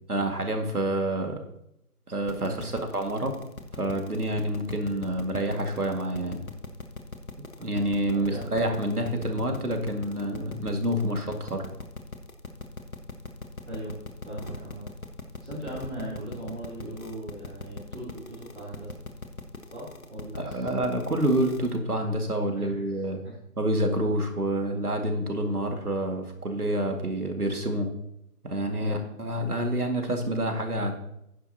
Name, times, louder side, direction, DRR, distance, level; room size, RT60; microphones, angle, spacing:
voice 1, 0.1-1.4 2.1-3.4 3.7-6.4 7.6-11.7 20.4-23.2 23.6-27.9 28.4-30.9, right 1 dB, 70° right, 4 dB, 2.2 m, -28 dB
sound 1, 2.3-21.8, left 3 dB, 60° left, 1.3 m, -40 dB
voice 2, 13.6-13.9 14.3-14.8 15.4-18.9 19.7-20.7 22.6-23.4 28.8-29.1, right 1 dB, 45° right, -8 dB, 3.5 m, -39 dB
11.5 x 10.0 x 2.9 m, 0.80 s
figure-of-eight pair, 175°, 46 cm